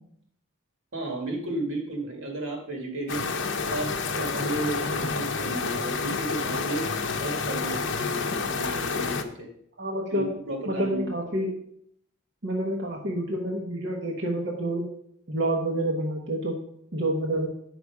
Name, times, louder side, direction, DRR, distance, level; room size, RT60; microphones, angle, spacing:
voice 1, 0.9-3.3 3.7-6.9 7.2-9.5 10.1-11.1, right 2 dB, 80° right, 1 dB, 2.2 m, -33 dB
sound 1, 3.1-9.2, left 4 dB, 60° left, 0.7 m, -29 dB
voice 2, 9.8-10.3 10.7-11.5 12.4-14.8 15.3-16.6 16.9-17.5, right 1 dB, 55° right, -1 dB, 1.1 m, -28 dB
8.2 x 6.0 x 4.8 m, 0.70 s
head